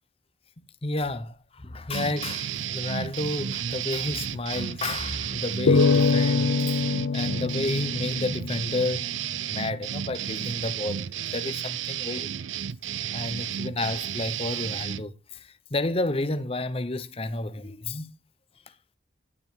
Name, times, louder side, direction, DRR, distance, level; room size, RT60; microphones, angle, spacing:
voice 1, 0.8-6.5 7.1-9.1 9.5-11.1 11.3-12.3 13.1-18.1, left 2 dB, 30° left, 0.8 m, -31 dB
sound 1, 1.9-15.0, right 9 dB, 80° right, 0.5 m, -32 dB
sound 2, 5.7-9.1, left 4 dB, 85° left, 0.6 m, -24 dB
12.0 x 7.4 x 3.7 m
head